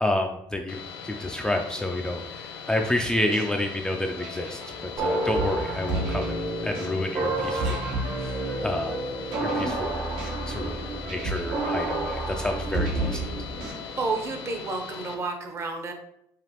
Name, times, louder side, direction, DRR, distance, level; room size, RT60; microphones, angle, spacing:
voice 1, 0.0-4.6 5.0-7.9 8.2-9.0 9.4-13.3, left 1 dB, 10° left, 2 dB, 0.3 m, -29 dB
sound 1, 0.7-15.1, left 6 dB, 65° left, 0.8 m, -40 dB
sound 2, 3.1-14.7, right 2 dB, 85° right, 1.0 m, -35 dB
sound 3, 5.0-13.7, right 2 dB, 50° right, 1.1 m, -31 dB
voice 2, 13.9-15.9, right 3 dB, 30° right, 4 dB, 0.7 m, -30 dB
4.9 x 2.5 x 2.9 m, 0.75 s
cardioid pair, 115°, 9 cm